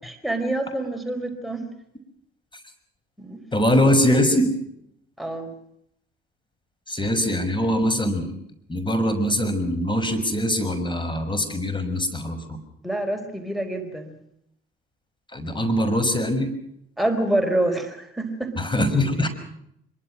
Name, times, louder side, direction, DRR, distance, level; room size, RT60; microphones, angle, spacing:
voice 1, 0.0-1.6 3.2-3.4 5.2-5.5 12.8-14.2 17.0-18.5, right 1 dB, ahead, 5 dB, 4.6 m, -26 dB
voice 2, 3.5-4.5 6.9-8.3 8.7-12.6 15.3-16.5 18.6-19.3, left 1 dB, 15° left, 7 dB, 6.0 m, -22 dB
25.0 x 23.0 x 6.3 m, 0.74 s
figure-of-eight pair, 50°, 29 cm